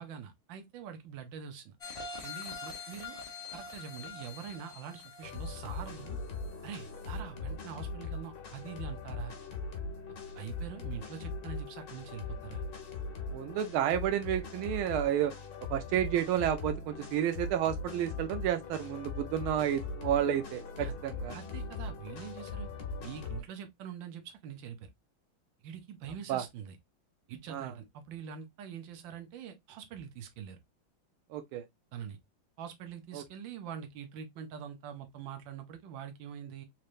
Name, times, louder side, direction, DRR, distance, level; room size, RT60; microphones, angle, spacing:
voice 1, 0.0-1.8 2.2-3.2 3.5-6.2 6.6-9.4 10.3-12.6 20.8-21.0 21.3-22.7 23.0-24.9 25.6-26.8 27.3-30.6 31.9-32.2 32.6-36.7, right 8 dB, 70° right, 1.5 m, -44 dB
sound 1, 1.8-6.6 7.0-7.1, left 4 dB, 30° left, 0.6 m, -44 dB
sound 2, 5.2-23.4, left 3 dB, 60° left, 1.6 m, -40 dB
voice 2, 13.3-15.3 15.7-21.4 26.3-26.4 27.5-27.7 31.3-31.6 33.1-33.2, right 11 dB, 90° right, 1.5 m, -31 dB
4.3 x 3.2 x 2.4 m
omnidirectional pair, 2.3 m